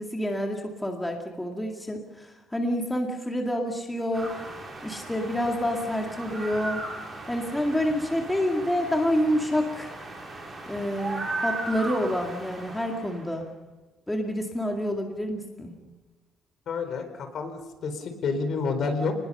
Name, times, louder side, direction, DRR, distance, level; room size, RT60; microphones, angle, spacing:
voice 1, 0.0-4.4 4.8-6.8 7.3-9.9 10.6-13.5 14.1-15.7, equal, 5° left, 1 dB, 2.2 m, -28 dB
sound 1, 4.1-13.3, right 2 dB, 20° right, 6.4 m, -37 dB
voice 2, 16.7-19.1, left 4 dB, 50° left, 7 dB, 4.3 m, -29 dB
29.0 x 20.5 x 5.5 m, 1.2 s
cardioid pair, 150°, 0 cm